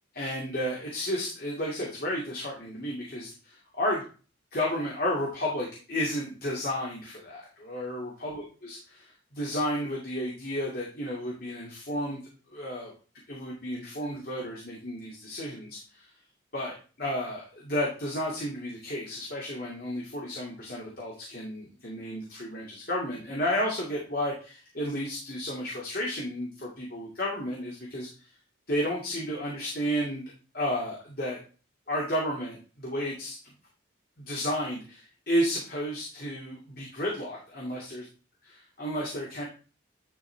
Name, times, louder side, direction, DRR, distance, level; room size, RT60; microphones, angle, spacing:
voice 1, 0.1-4.0 4.5-12.2 12.5-12.9 13.3-16.1 16.5-28.1 28.7-30.2 30.5-31.4 31.9-33.4 34.2-38.0 38.4-39.4, equal, 50° left, -3 dB, 2.4 m, -32 dB
11.0 x 4.8 x 3.4 m, 0.35 s
head